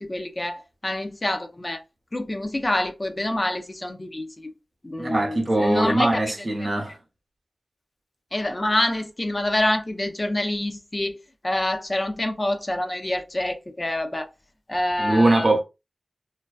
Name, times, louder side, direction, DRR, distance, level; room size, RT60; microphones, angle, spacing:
voice 1, 0.0-1.8 2.1-4.5 4.8-6.2 8.3-11.2 11.4-14.3 14.7-15.5, left 1 dB, 30° left, 0.4 m, -26 dB
voice 2, 5.0-6.9 15.0-15.6, right 2 dB, 45° right, 0.9 m, -21 dB
2.5 x 2.1 x 2.3 m
cardioid pair, 50°, 0 cm